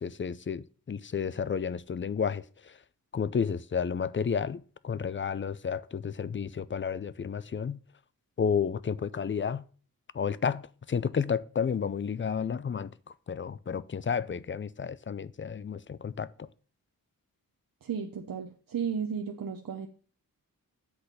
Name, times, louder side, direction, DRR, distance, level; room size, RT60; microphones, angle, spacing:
voice 1, 0.0-2.4 3.1-7.8 8.4-9.6 10.1-12.9 13.3-16.3, left 6 dB, 35° left, 0.4 m, -31 dB
voice 2, 17.8-19.9, right 7 dB, 70° right, 0.8 m, -34 dB
7.8 x 4.1 x 6.7 m
wide cardioid pair, 85°, 35 cm